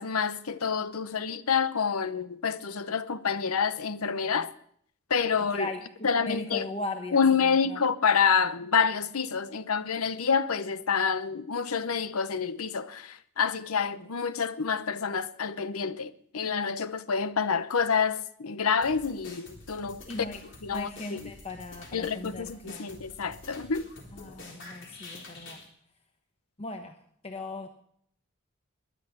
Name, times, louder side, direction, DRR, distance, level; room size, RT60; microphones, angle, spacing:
voice 1, 0.0-4.5 5.1-5.7 6.0-6.7 7.1-20.0 20.6-21.3 21.9-23.9, left 6 dB, 85° left, 0.8 m, -28 dB
voice 2, 5.5-7.8 20.1-20.4 20.7-23.0 24.1-25.6 26.6-27.0 27.2-27.7, left 2 dB, 30° left, 1.0 m, -38 dB
sound 1, 18.8-25.7, left 2 dB, 55° left, 3.7 m, -48 dB
21.5 x 10.5 x 6.0 m
head